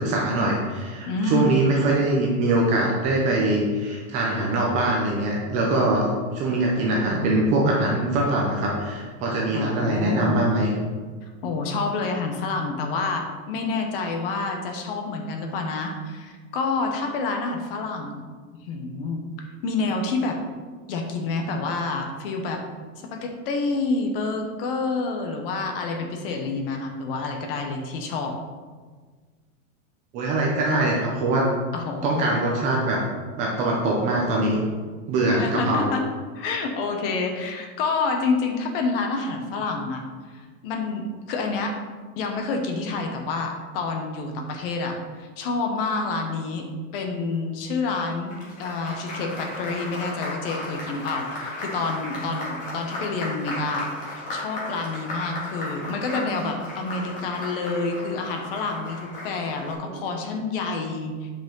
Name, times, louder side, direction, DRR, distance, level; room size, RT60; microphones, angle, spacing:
voice 1, 0.0-10.7 30.1-31.5 32.0-33.0 33.4-34.6 35.1-35.9 59.9-60.0, right 2 dB, 20° right, -2 dB, 0.5 m, -23 dB
voice 2, 1.1-1.5 9.5-10.4 11.4-18.2 18.7-19.2 19.6-20.4 20.9-22.6 23.0-28.3 31.7-32.2 35.3-36.0 36.3-40.0 40.3-41.8 42.2-46.7 46.9-48.3 48.6-61.3, left 3 dB, 45° left, 4 dB, 1.0 m, -28 dB
Applause, 48.1-59.7, left 1 dB, 20° left, 1.7 m, -35 dB
8.9 x 5.1 x 3.8 m, 1.5 s
supercardioid pair, 170°, 41 cm